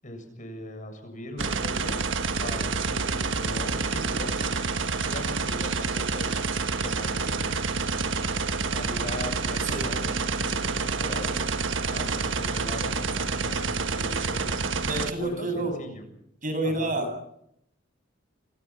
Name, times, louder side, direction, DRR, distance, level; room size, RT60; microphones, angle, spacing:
voice 1, 0.0-2.1 2.4-4.6 5.0-6.3 6.8-7.6 8.7-11.4 11.9-14.6 15.2-16.1 16.6-17.0, left 1 dB, 40° left, 7 dB, 7.5 m, -39 dB
sound 1, 1.4-15.1, right 4 dB, 70° right, 1.6 m, -28 dB
voice 2, 14.9-15.8 16.4-17.2, right 2 dB, 45° right, 7 dB, 7.6 m, -29 dB
29.5 x 26.0 x 6.1 m, 0.77 s
head